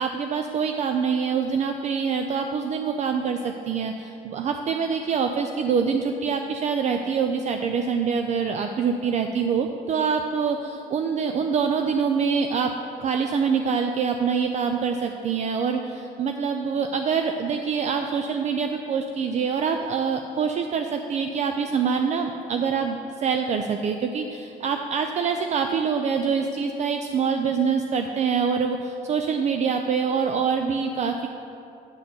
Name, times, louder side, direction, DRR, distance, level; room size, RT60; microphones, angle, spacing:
voice 1, 0.0-12.7 13.0-31.3, right 6 dB, 45° right, 5 dB, 0.4 m, -25 dB
8.8 x 4.2 x 6.8 m, 2.8 s
cardioid pair, 110°, 17 cm